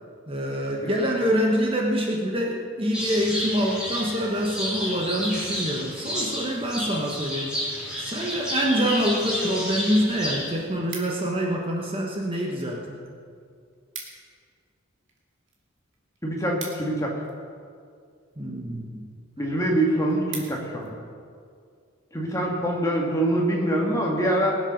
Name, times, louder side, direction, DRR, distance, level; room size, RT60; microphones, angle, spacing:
voice 1, 0.3-7.7 8.0-13.1 18.4-19.1, equal, 25° right, -1 dB, 1.3 m, -26 dB
sound 1, 2.9-10.6, equal, 5° right, 3.4 m, -31 dB
sound 2, 10.9-11.5 12.2-12.7 13.0-13.1 13.4-13.5 13.7-14.4 14.7-17.6 18.3-18.6 19.1-19.2 19.6-19.7 19.9-20.9 21.4-21.6, right 5 dB, 60° right, 2.5 m, -42 dB
voice 2, 16.2-17.2 19.4-21.0 22.1-24.6, right 1 dB, 15° left, -2 dB, 2.0 m, -24 dB
20.0 x 7.5 x 6.5 m, 2.2 s
head